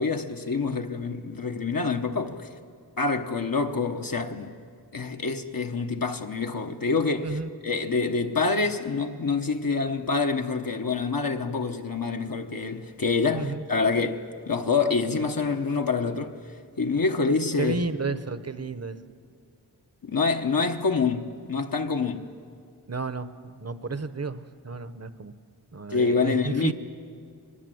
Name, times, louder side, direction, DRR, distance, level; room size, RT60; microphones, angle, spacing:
voice 1, 0.0-2.5 3.0-4.5 4.9-7.4 7.6-16.4 16.8-17.8 20.0-22.3 25.9-26.7, left 4 dB, 55° left, 1.1 m, -26 dB
voice 2, 17.6-19.0 22.9-25.3 25.7-26.7, right 3 dB, 40° right, 0.9 m, -32 dB
23.5 x 20.0 x 7.8 m
wide cardioid pair, 80°, 41 cm